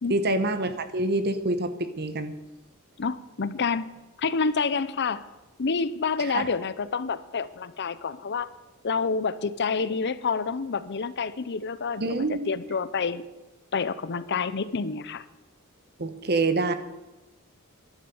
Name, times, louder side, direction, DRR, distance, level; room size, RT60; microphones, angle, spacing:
voice 1, 0.1-2.3 6.2-6.5 12.0-12.5 16.0-16.7, right 2 dB, 50° right, 11 dB, 1.1 m, -26 dB
voice 2, 3.0-3.9 4.2-5.2 5.6-8.5 8.8-13.2 13.7-15.3, left 5 dB, 55° left, 15 dB, 0.7 m, -28 dB
12.0 x 11.0 x 7.0 m, 1.1 s
head